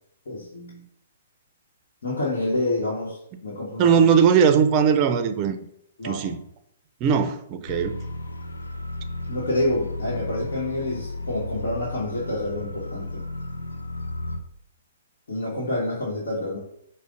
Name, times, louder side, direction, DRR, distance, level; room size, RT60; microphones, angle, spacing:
voice 1, 0.3-0.8 2.0-3.9 6.0-6.2 9.3-13.2 15.3-16.6, left 1 dB, 70° left, 1.1 m, -28 dB
voice 2, 3.8-5.6 6.0-6.4 7.0-8.0, right 7 dB, 35° right, 0.4 m, -19 dB
sound 1, 7.7-14.4, left 2 dB, 90° left, 0.5 m, -34 dB
4.9 x 2.1 x 3.7 m
figure-of-eight pair, 125°, 0 cm